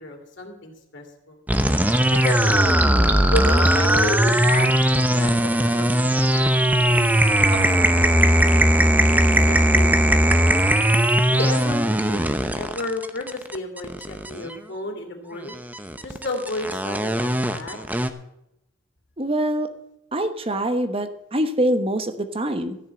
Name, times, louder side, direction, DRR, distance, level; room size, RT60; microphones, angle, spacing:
voice 1, 0.0-1.4 2.1-2.8 3.3-7.1 7.5-8.6 9.1-10.6 11.3-12.2 12.5-15.6 16.0-17.8, left 2 dB, 60° left, 2 dB, 2.9 m, -32 dB
sound 1, 1.5-14.5 15.5-18.1, right 1 dB, 10° right, 0.7 m, -19 dB
voice 2, 19.2-19.7 20.1-22.8, right 1 dB, 30° right, 8 dB, 1.1 m, -24 dB
14.0 x 6.5 x 8.5 m, 0.84 s
head